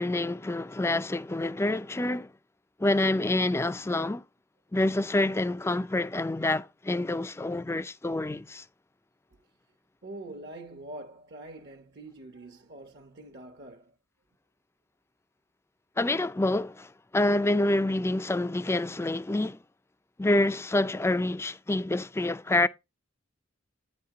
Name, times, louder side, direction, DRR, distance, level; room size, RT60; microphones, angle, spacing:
voice 1, 0.0-2.3 2.8-4.2 4.7-8.6 16.0-19.6 20.2-22.7, left 2 dB, 15° left, 0.4 m, -27 dB
voice 2, 10.0-14.0, right 2 dB, 55° right, 1.0 m, -44 dB
9.4 x 4.2 x 4.8 m
head